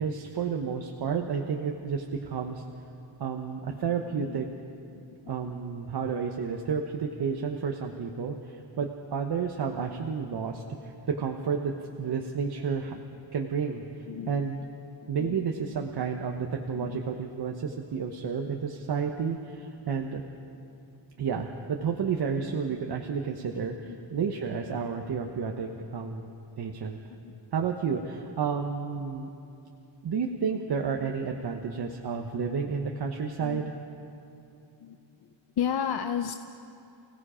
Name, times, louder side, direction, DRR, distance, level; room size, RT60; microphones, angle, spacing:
voice 1, 0.0-2.6 3.2-4.5 5.3-13.0 13.3-14.7 15.1-20.2 21.2-26.3 26.6-27.0 27.5-29.3 30.0-33.7, right 6 dB, 55° right, 2 dB, 1.1 m, -31 dB
voice 2, 4.9-5.6 8.8-8.9 12.9-13.0 14.1-14.4 15.0-15.4 16.7-17.0 23.9-24.0 27.1-27.3 33.4-33.7 34.8-35.0 35.6-36.3, left 8 dB, 55° left, 7 dB, 0.7 m, -34 dB
29.5 x 17.5 x 5.0 m, 2.8 s
wide cardioid pair, 170°, 47 cm